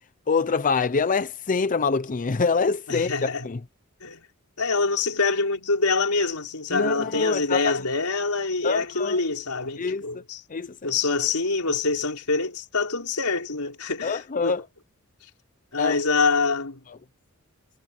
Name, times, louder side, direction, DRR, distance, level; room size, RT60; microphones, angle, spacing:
voice 1, 0.3-3.1 3.4-3.6 6.7-7.7 8.6-9.2 9.8-10.1 10.5-10.9 14.0-14.6 15.8-16.0, left 4 dB, 35° left, 0.6 m, -25 dB
voice 2, 2.9-3.5 4.0-4.2 4.6-10.4 10.8-14.6 15.7-16.8, left 4 dB, 90° left, 4.2 m, -25 dB
head